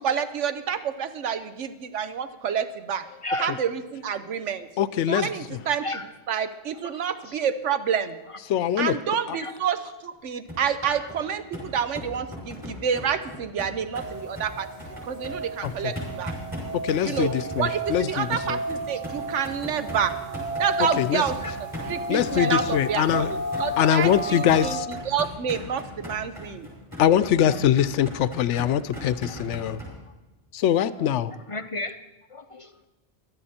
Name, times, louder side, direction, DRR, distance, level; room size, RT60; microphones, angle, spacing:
voice 1, 0.0-3.0 3.4-4.7 5.1-8.2 8.8-16.3 17.0-17.3 17.6-20.1 20.6-26.7, right 7 dB, 90° right, 11 dB, 1.2 m, -28 dB
voice 2, 4.8-5.3 8.5-8.9 15.6-15.9 16.8-18.6 21.0-21.2 22.1-23.3 23.8-24.9 27.0-29.8 30.5-31.3, left 10 dB, 85° left, 16 dB, 0.9 m, -23 dB
sound 1, 10.5-29.9, left 1 dB, 15° right, 6.2 m, -38 dB
sound 2, 13.9-24.8, right 1 dB, 40° right, 1.4 m, -33 dB
voice 3, 31.5-32.0 32.3-32.9, left 2 dB, 40° left, 9 dB, 0.5 m, -32 dB
18.0 x 12.0 x 4.3 m, 1.1 s
omnidirectional pair, 1.2 m